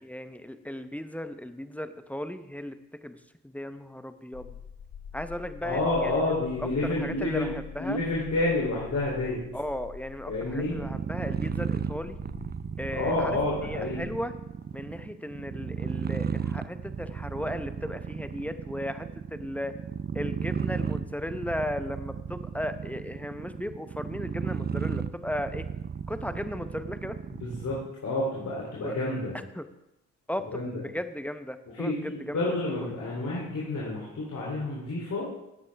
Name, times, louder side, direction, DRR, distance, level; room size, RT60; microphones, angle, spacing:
voice 1, 0.0-3.2 3.4-4.6 5.1-6.2 6.6-8.0 9.5-12.2 12.8-14.3 14.7-19.7 20.1-25.7 26.1-27.2 28.8-29.0 29.5-29.7 30.3-32.4 32.8-33.0, left 1 dB, 5° left, 10 dB, 0.9 m, -36 dB
sound 1, 4.3-14.1, left 7 dB, 80° left, 3.3 m, -46 dB
voice 2, 5.6-7.5 7.8-9.4 10.3-10.8 12.9-14.1 27.3-27.8 28.0-29.3 30.5-30.7 31.7-35.3, left 2 dB, 55° left, -5 dB, 3.2 m, -29 dB
sound 2, 10.6-27.9, right 7 dB, 30° right, 0.5 m, -34 dB
13.0 x 8.8 x 3.5 m, 0.89 s
supercardioid pair, 55°, 34 cm